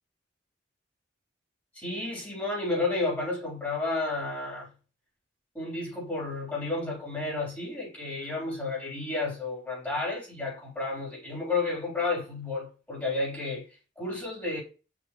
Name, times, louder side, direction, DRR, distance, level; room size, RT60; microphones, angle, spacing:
voice 1, 1.8-4.7 5.5-13.6 14.0-14.6, left 3 dB, 10° left, 3.9 m, -31 dB
6.4 x 5.8 x 3.1 m
head